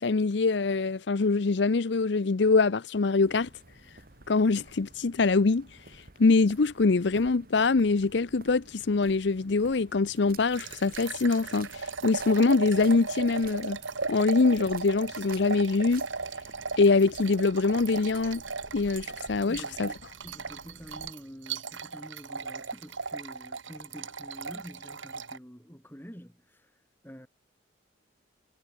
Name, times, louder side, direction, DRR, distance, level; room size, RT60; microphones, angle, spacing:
voice 1, 0.0-3.5 4.3-13.8 14.1-16.1 16.8-18.4 18.7-19.9, left 3 dB, 65° left, 0.6 m, -24 dB
sound 1, 3.2-21.1, right 3 dB, 45° right, 2.0 m, -52 dB
sound 2, 10.5-25.4, right 4 dB, 80° right, 2.7 m, -37 dB
voice 2, 19.4-26.6 27.0-27.3, equal, 10° left, 3.5 m, -47 dB
head